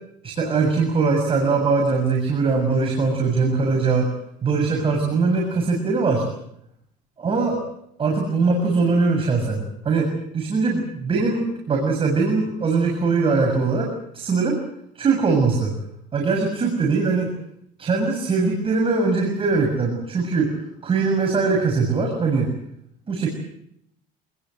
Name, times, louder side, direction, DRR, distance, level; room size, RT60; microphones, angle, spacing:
voice 1, 0.2-4.1 4.4-6.3 7.2-7.6 8.0-14.6 15.0-15.8 16.1-17.3 17.8-20.6 20.8-22.5 23.1-23.3, right 4 dB, 30° right, 1 dB, 7.0 m, -21 dB
27.5 x 20.5 x 7.8 m, 0.74 s
cardioid pair, 120°, 18 cm